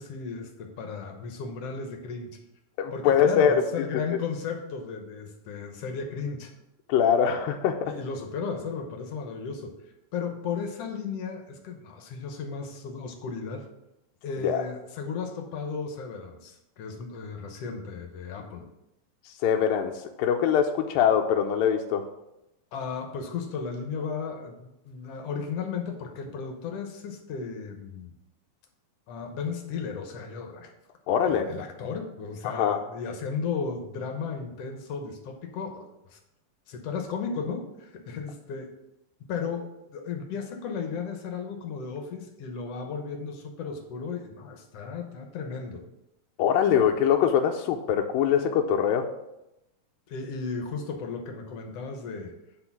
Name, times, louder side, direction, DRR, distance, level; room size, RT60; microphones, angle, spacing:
voice 1, 0.0-2.3 2.9-6.5 7.8-9.7 10.1-13.7 14.2-18.7 22.7-28.1 29.1-30.7 31.1-36.2 36.7-38.7 39.3-45.8 50.1-52.3, left 5 dB, 65° left, 3 dB, 1.6 m, -35 dB
voice 2, 2.8-3.6 6.9-7.9 14.4-14.6 19.4-22.0 31.1-31.5 32.5-32.8 46.4-49.1, left 8 dB, 90° left, 3 dB, 2.3 m, -23 dB
9.7 x 4.0 x 5.9 m, 0.88 s
omnidirectional pair, 4.0 m